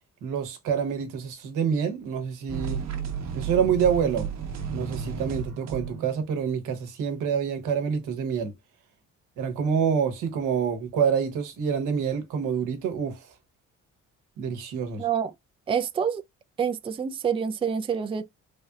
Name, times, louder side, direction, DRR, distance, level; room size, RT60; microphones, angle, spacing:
voice 1, 0.2-2.8 3.3-4.3 4.7-8.5 9.4-13.2 14.4-15.0, right 7 dB, 90° right, 0.9 m, -27 dB
sound 1, 2.5-6.3, right 6 dB, 60° right, 0.8 m, -33 dB
voice 2, 15.0-15.3 15.7-16.2 16.6-18.2, right 7 dB, 20° right, 0.3 m, -27 dB
3.3 x 2.7 x 2.2 m
cardioid pair, 90°, 30 cm